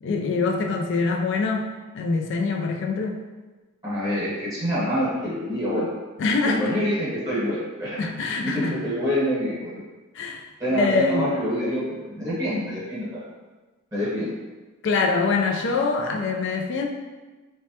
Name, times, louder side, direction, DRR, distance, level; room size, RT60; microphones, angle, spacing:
voice 1, 0.0-1.7 1.9-3.2 6.2-6.7 8.0-8.8 10.1-10.4 10.7-11.2 14.8-16.9, left 4 dB, 60° left, 2 dB, 0.4 m, -24 dB
voice 2, 3.8-5.9 6.4-8.0 8.4-9.8 10.6-13.2 13.9-14.3, equal, 15° right, -9 dB, 1.0 m, -26 dB
3.1 x 2.2 x 2.7 m, 1.2 s
head